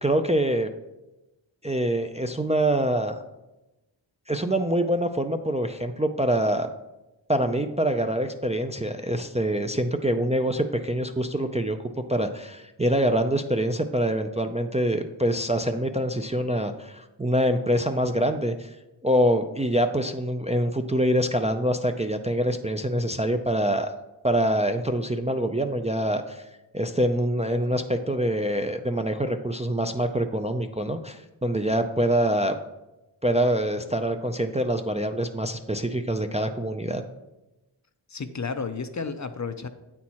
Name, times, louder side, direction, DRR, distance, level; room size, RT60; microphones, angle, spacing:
voice 1, 0.0-0.7 1.6-3.2 4.3-6.7 7.3-11.8 12.1-18.7 19.0-23.9 24.2-26.4 26.7-32.6 33.2-37.0, right 1 dB, 15° right, 6 dB, 0.4 m, -25 dB
voice 2, 38.1-39.7, left 5 dB, 40° left, 10 dB, 0.5 m, -32 dB
8.3 x 4.4 x 4.2 m, 0.99 s
wide cardioid pair, 40°, 46 cm